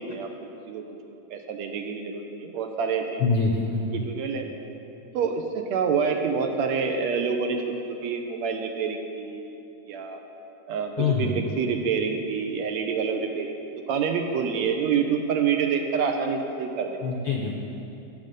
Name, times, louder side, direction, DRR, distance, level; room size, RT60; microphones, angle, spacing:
voice 1, 1.3-3.2 3.9-4.5 5.1-9.6 9.9-10.2 10.7-13.5 13.9-17.0, right 6 dB, 75° right, 4 dB, 1.9 m, -27 dB
voice 2, 3.2-4.0 11.0-11.4 17.0-17.5, left 4 dB, 75° left, 1 dB, 1.2 m, -25 dB
18.0 x 7.6 x 5.3 m, 2.9 s
omnidirectional pair, 3.5 m